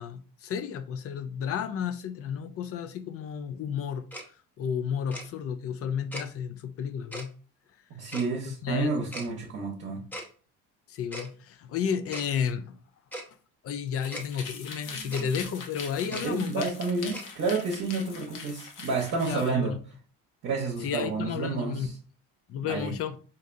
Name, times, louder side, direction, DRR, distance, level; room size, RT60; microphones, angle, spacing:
voice 1, 0.0-4.1 4.6-7.3 8.5-9.1 10.9-12.8 13.6-16.7 19.3-19.8 20.8-22.0 22.5-23.2, left 7 dB, 50° left, 0.5 m, -32 dB
Tick-tock, 4.1-4.2 5.1-5.2 6.1-6.2 7.1-7.2 8.1-8.3 9.1-9.3 10.1-10.3 11.1-11.3 12.1-12.3 13.1-13.2 14.1-14.2 15.1-15.3 16.1-16.2 17.1-17.3, equal, 5° left, 0.7 m, -38 dB
voice 2, 7.9-10.0 15.0-15.1 16.2-19.7 20.4-21.9 22.6-22.9, right 4 dB, 50° right, 0.9 m, -30 dB
sound 1, 13.9-19.5, left 5 dB, 75° left, 0.9 m, -42 dB
4.1 x 2.6 x 2.5 m
cardioid pair, 110°, 32 cm